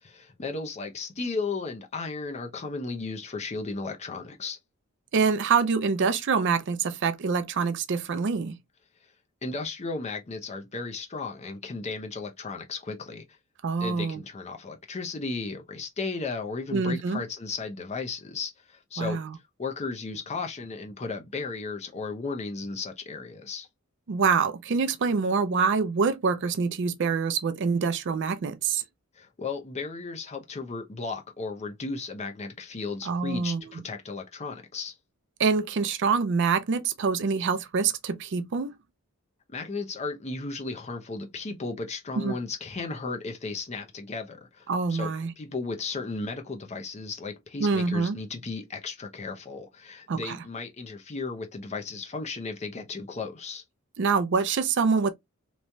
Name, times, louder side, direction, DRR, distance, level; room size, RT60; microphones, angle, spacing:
voice 1, 0.0-4.6 9.4-13.3 13.8-19.2 19.6-23.7 29.2-35.0 39.5-53.6, left 4 dB, 30° left, 0.5 m, -35 dB
voice 2, 5.1-8.6 13.6-14.2 16.7-17.2 19.0-19.4 24.1-28.8 33.1-33.6 35.4-38.8 42.2-42.3 44.7-45.3 47.6-48.2 50.1-50.4 54.0-55.1, right 5 dB, 55° right, 0.4 m, -25 dB
3.0 x 2.2 x 2.6 m
head